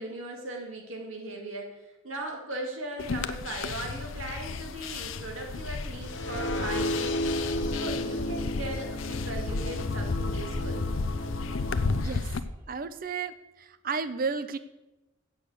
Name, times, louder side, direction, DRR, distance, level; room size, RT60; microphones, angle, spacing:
voice 1, 0.0-10.8, right 1 dB, 80° right, 1 dB, 2.3 m, -38 dB
sound 1, 3.0-12.4, left 4 dB, 80° left, 0.6 m, -33 dB
sound 2, 6.0-12.0, left 1 dB, 65° left, 0.9 m, -33 dB
voice 2, 12.7-13.3 13.6-14.6, right 5 dB, 45° right, 13 dB, 0.5 m, -32 dB
7.7 x 6.7 x 8.1 m, 1.0 s
head